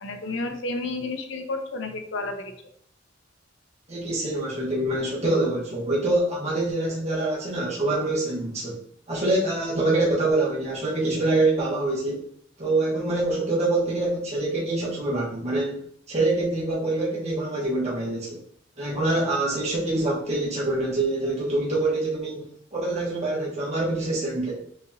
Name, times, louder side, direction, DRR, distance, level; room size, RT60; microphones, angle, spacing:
voice 1, 0.0-2.5, left 2 dB, 65° left, 5 dB, 0.6 m, -31 dB
voice 2, 3.9-8.8 9.1-12.2 12.6-15.8 16.1-18.4 18.8-22.4 22.7-24.5, right 2 dB, 35° right, -6 dB, 1.2 m, -25 dB
5.9 x 2.8 x 2.6 m, 0.66 s
head